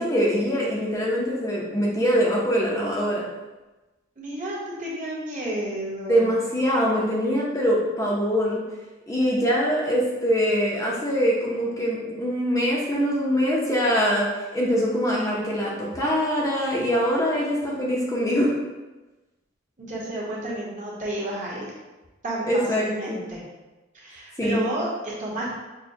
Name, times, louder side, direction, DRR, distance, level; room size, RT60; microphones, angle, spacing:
voice 1, 0.0-3.2 6.1-8.6 9.1-14.3 14.5-18.5 22.5-23.2 24.4-24.7, equal, 15° left, -5 dB, 0.6 m, -23 dB
voice 2, 4.2-6.3 17.4-18.0 19.8-21.7 22.2-23.4 23.9-25.5, right 1 dB, 40° right, -6 dB, 1.1 m, -31 dB
6.1 x 2.2 x 2.7 m, 1.1 s
head